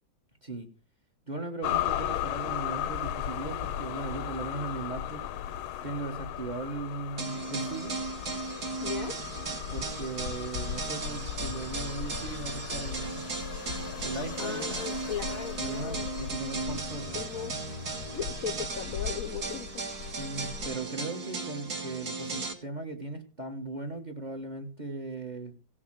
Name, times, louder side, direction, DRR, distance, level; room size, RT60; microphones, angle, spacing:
voice 1, 1.3-5.2 5.8-8.0 9.7-13.2 14.0-14.9 15.6-17.1 20.1-25.5, right 3 dB, 25° right, 1.2 m, -38 dB
sound 1, 1.6-20.7, left 11 dB, 80° left, 1.6 m, -37 dB
sound 2, 7.2-22.5, right 4 dB, 50° right, 2.3 m, -36 dB
voice 2, 8.8-9.1 14.4-16.1 17.1-17.5 18.1-19.8, left 7 dB, 55° left, 1.0 m, -37 dB
16.5 x 6.5 x 7.5 m
omnidirectional pair, 2.3 m